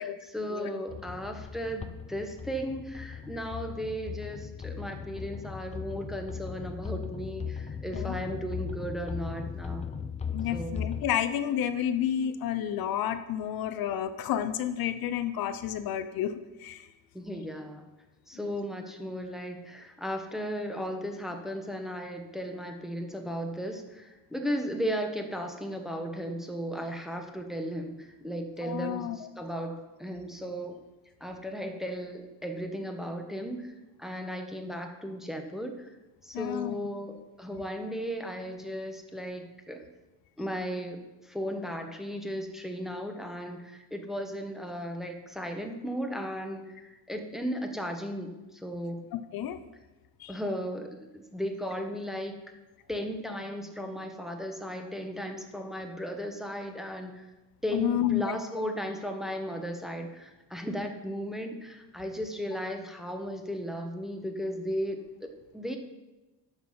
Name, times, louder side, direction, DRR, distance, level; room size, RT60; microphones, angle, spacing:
voice 1, 0.0-9.9 10.5-10.8 17.1-17.8 18.3-30.8 31.2-33.7 34.0-35.9 36.2-39.8 40.4-49.1 50.3-52.3 52.9-57.3 57.6-65.8, equal, ahead, 4 dB, 0.9 m, -36 dB
sound 1, 0.9-11.0, left 7 dB, 15° left, 0.4 m, -38 dB
voice 2, 10.3-16.3 16.6-16.9 28.6-29.3 36.3-36.7 49.1-49.6 50.2-50.4 57.7-58.4, left 10 dB, 60° left, 10 dB, 0.6 m, -30 dB
9.7 x 6.1 x 5.6 m, 1.1 s
cardioid pair, 125°, 42 cm